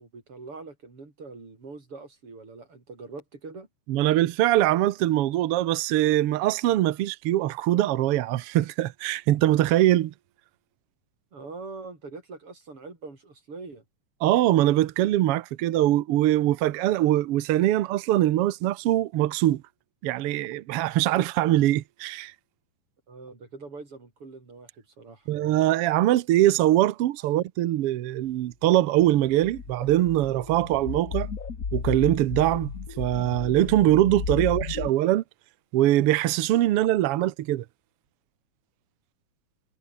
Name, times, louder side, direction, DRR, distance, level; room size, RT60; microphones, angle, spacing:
voice 1, 0.0-3.7 11.3-13.8 23.1-25.3, right 3 dB, 40° right, 6.2 m, -43 dB
voice 2, 3.9-10.1 14.2-19.6 20.0-22.3 25.3-31.3 31.7-32.7 33.0-35.2 35.7-37.6, right 14 dB, 80° right, 1.3 m, -22 dB
sound 1, 29.3-34.9, left 5 dB, 35° left, 1.6 m, -34 dB
omnidirectional pair, 3.7 m